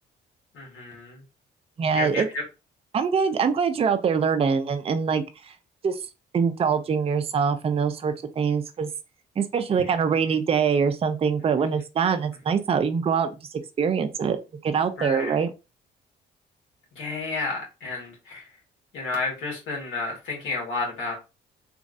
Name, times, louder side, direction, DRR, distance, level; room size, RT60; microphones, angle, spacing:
voice 1, 0.5-1.2 1.9-2.4 15.0-15.4 17.0-18.4 18.9-21.1, left 3 dB, 80° left, 1.5 m, -31 dB
voice 2, 1.8-2.3 2.9-5.5 5.8-6.0 6.3-8.9 9.4-13.4 13.8-14.4 14.6-15.5, right 6 dB, 30° right, 0.4 m, -24 dB
3.0 x 2.5 x 2.5 m
cardioid pair, 90°, 20 cm